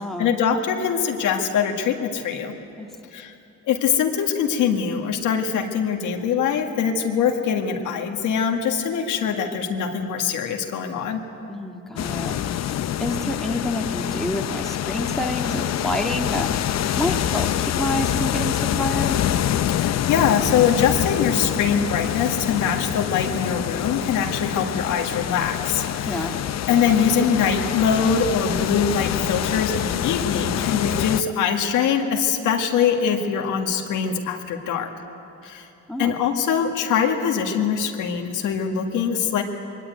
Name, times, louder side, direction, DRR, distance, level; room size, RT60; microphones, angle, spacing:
voice 1, 0.0-2.5 3.1-3.3 3.7-11.2 19.7-26.3 26.7-34.9 35.4-35.7 36.0-39.4, left 7 dB, 85° left, 3 dB, 1.9 m, -23 dB
voice 2, 11.5-16.5 16.9-19.2 26.1-26.4 35.9-36.2, left 1 dB, ahead, 1 dB, 1.8 m, -28 dB
sound 1, 12.0-31.2, left 11 dB, 60° left, 0.7 m, -26 dB
22.0 x 17.5 x 9.3 m, 2.8 s
cardioid pair, 90°, 30 cm